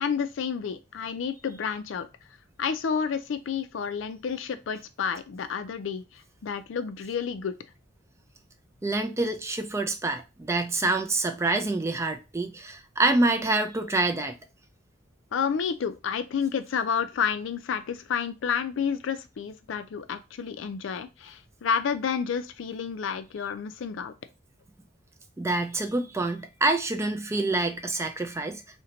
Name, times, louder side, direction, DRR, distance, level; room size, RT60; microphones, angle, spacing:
voice 1, 0.0-2.1 2.6-7.6 15.3-24.1, left 6 dB, 70° left, 0.4 m, -30 dB
voice 2, 8.8-14.3 25.4-28.6, right 2 dB, 15° right, 0.3 m, -26 dB
2.8 x 2.2 x 3.8 m
head